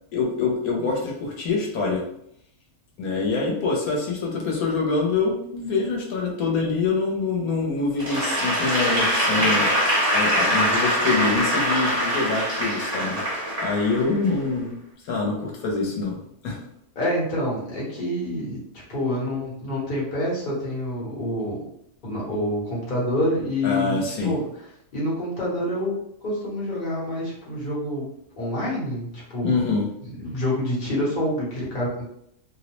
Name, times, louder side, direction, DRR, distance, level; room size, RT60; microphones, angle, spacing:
voice 1, 0.1-2.0 3.0-14.8 15.0-16.2 16.4-16.6 23.6-24.3 29.4-29.9, left 4 dB, 85° left, -1 dB, 1.1 m, -25 dB
Applause / Crowd, 8.0-14.4, equal, 30° right, 1.1 m, -23 dB
voice 2, 17.0-18.6 18.9-21.7 22.0-24.4 24.9-29.5 30.2-32.1, left 1 dB, 40° left, -5 dB, 1.0 m, -27 dB
2.7 x 2.0 x 2.9 m, 0.74 s
omnidirectional pair, 1.5 m